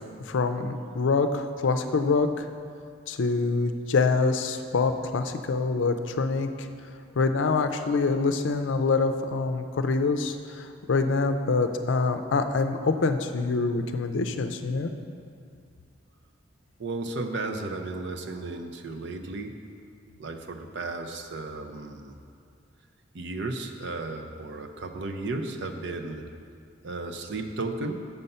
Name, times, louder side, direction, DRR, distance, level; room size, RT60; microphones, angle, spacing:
voice 1, 0.3-2.5 3.1-6.7 7.2-14.9, left 4 dB, 70° left, 8 dB, 0.5 m, -25 dB
voice 2, 16.8-19.5 20.2-22.1 23.1-26.2 26.8-27.9, right 3 dB, 65° right, 5 dB, 0.6 m, -34 dB
6.8 x 5.6 x 5.3 m, 2.3 s
head